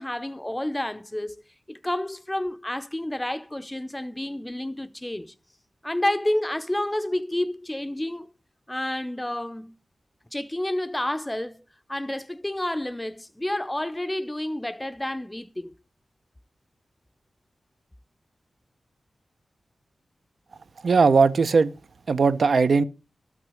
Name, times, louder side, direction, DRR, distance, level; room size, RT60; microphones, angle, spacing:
voice 1, 0.0-1.4 1.7-5.3 5.8-8.3 8.7-9.7 10.3-11.6 11.9-15.7, left 1 dB, 10° left, 0.6 m, -29 dB
voice 2, 20.8-21.7 22.1-22.8, right 4 dB, 60° right, 0.6 m, -19 dB
13.0 x 6.1 x 6.3 m
wide cardioid pair, 145°, 0 cm